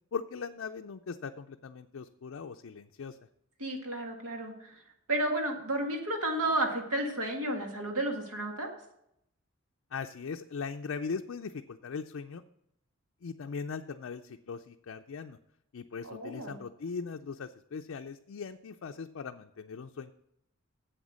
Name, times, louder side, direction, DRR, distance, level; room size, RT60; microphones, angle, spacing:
voice 1, 0.1-3.2 9.9-12.4 13.2-15.4 15.7-20.1, left 5 dB, 65° left, 5 dB, 0.4 m, -39 dB
voice 2, 3.6-4.8 5.1-8.7 16.0-16.6, right 1 dB, 90° right, 3 dB, 1.9 m, -32 dB
8.0 x 7.9 x 6.2 m, 0.77 s
head